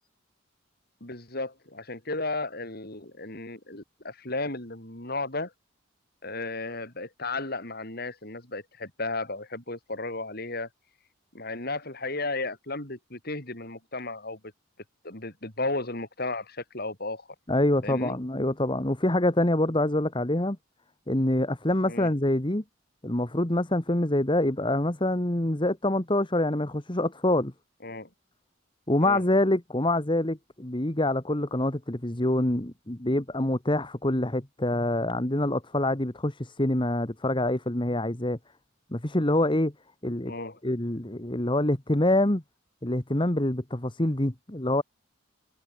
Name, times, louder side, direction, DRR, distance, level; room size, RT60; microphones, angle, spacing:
voice 1, 1.0-5.5 6.2-10.7 11.3-14.4 15.0-17.3 17.8-18.1 21.9-22.1 27.8-28.1 29.0-29.2 40.2-40.6, left 2 dB, 50° left, 5.9 m, -34 dB
voice 2, 17.5-20.6 21.1-22.6 23.0-27.5 28.9-38.4 38.9-39.7 40.0-40.3 40.6-42.4 42.8-44.8, left 1 dB, 25° left, 1.6 m, -26 dB
head